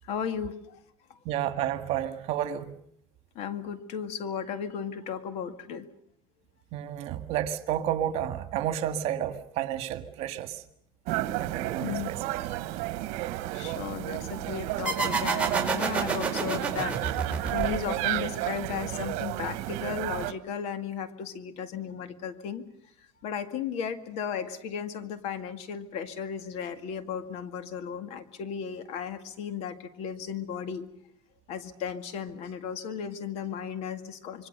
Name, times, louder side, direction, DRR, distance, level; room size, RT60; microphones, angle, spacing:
voice 1, 0.0-0.8 1.1-1.2 3.4-5.9 11.8-12.1 13.5-22.7 23.2-30.9 31.5-34.5, left 7 dB, 60° left, 2.1 m, -35 dB
voice 2, 1.3-2.7 6.7-10.6 11.4-12.5, right 11 dB, 55° right, 1.9 m, -31 dB
sound 1, 11.1-20.3, right 16 dB, 75° right, 1.3 m, -32 dB
sound 2, 14.9-18.2, right 4 dB, 10° right, 4.9 m, -29 dB
26.5 x 23.0 x 6.7 m
cardioid pair, 150°, 12 cm